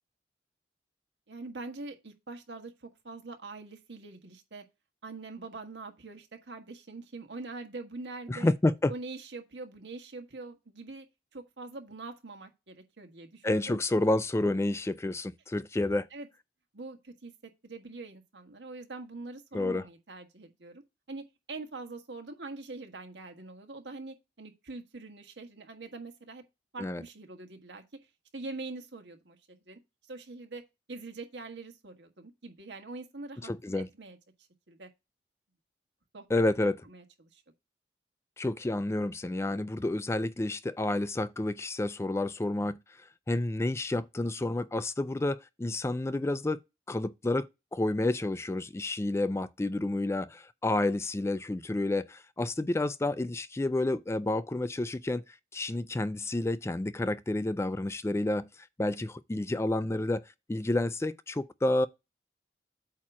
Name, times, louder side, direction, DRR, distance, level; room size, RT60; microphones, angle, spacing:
voice 1, 1.3-4.6 5.0-8.5 8.9-11.1 11.3-13.8 16.1-16.3 16.7-20.8 21.1-26.4 26.7-27.8 28.3-29.8 30.1-30.6 30.9-34.2 34.7-34.9 36.1-36.3 36.8-37.4, right 3 dB, 90° right, 1.5 m, -44 dB
voice 2, 8.3-8.9 13.4-16.1 19.5-19.8 26.8-27.0 33.4-33.9 36.3-36.8 38.4-42.8 43.3-46.6 46.9-55.2 55.5-60.2 60.5-61.9, left 2 dB, 15° left, 0.3 m, -30 dB
8.5 x 2.9 x 6.1 m
head